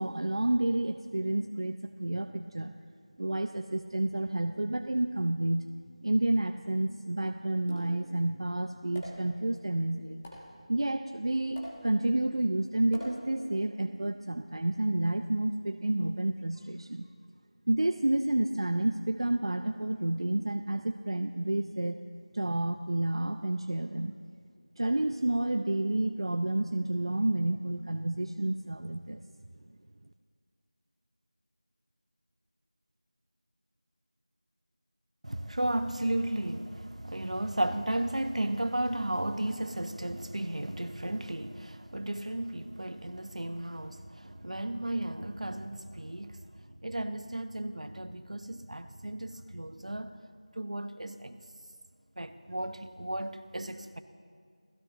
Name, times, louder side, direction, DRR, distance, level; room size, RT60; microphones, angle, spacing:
voice 1, 0.0-2.8 3.2-5.7 6.0-10.3 10.7-17.1 17.7-22.0 22.3-24.1 24.8-29.2, right 1 dB, 45° right, 0.5 m, -30 dB
sound 1, 7.7-8.2 9.0-9.4 10.2-10.6 11.6-12.1 12.9-13.5, left 1 dB, 10° left, 1.3 m, -44 dB
voice 2, 35.2-46.4 46.8-50.2 50.6-51.4 52.2-54.0, right 1 dB, 70° right, 1.1 m, -34 dB
28.5 x 16.0 x 3.0 m
figure-of-eight pair, 175°, 4 cm